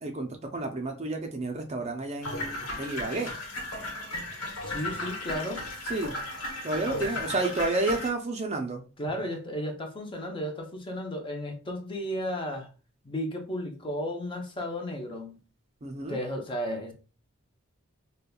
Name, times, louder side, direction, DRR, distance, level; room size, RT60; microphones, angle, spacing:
voice 1, 0.0-3.3 5.9-6.1 6.6-8.8 15.8-16.2, right 2 dB, 30° right, 0.5 m, -31 dB
sound 1, 2.2-8.1, left 1 dB, 85° left, 1.0 m, -35 dB
voice 2, 4.7-5.7 9.0-12.7 13.0-15.4 16.1-16.9, equal, 20° left, 0.6 m, -34 dB
5.2 x 2.2 x 2.2 m
head